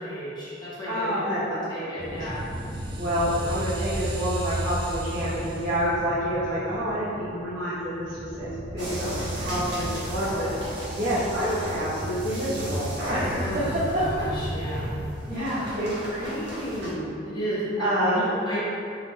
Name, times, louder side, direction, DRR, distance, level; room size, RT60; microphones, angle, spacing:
voice 1, 0.0-2.4 3.1-3.3 13.4-13.7 14.0-14.9 17.2-18.6, equal, 25° left, -10 dB, 1.2 m, -33 dB
voice 2, 0.8-2.3 3.0-10.5 10.9-13.6 13.9-14.0 14.7-14.8 15.3-17.1 17.8-18.3, equal, 50° right, -14 dB, 1.1 m, -28 dB
sound 1, 2.0-15.1, right 1 dB, 25° right, 0.4 m, -34 dB
sound 2, 8.8-16.9, equal, 70° right, 1.1 m, -36 dB
3.9 x 3.0 x 4.3 m, 2.6 s
head